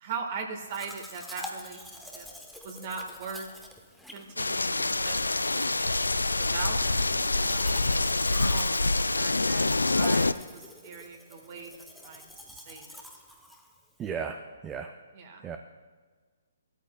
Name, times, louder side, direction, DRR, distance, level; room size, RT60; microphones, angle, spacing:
voice 1, 0.0-2.3 2.6-3.5 4.1-6.0 6.4-11.7 12.0-13.0 15.1-15.4, right 5 dB, 45° right, 3 dB, 1.5 m, -40 dB
Domestic sounds home sounds, 0.7-14.1, left 1 dB, ahead, 0.9 m, -47 dB
sound 1, 4.4-10.3, left 2 dB, 90° left, 0.3 m, -26 dB
voice 2, 14.0-14.4 14.6-14.9 15.4-15.6, right 7 dB, 15° right, 5 dB, 0.5 m, -34 dB
14.5 x 13.0 x 2.3 m, 1.5 s
figure-of-eight pair, 135°, 0 cm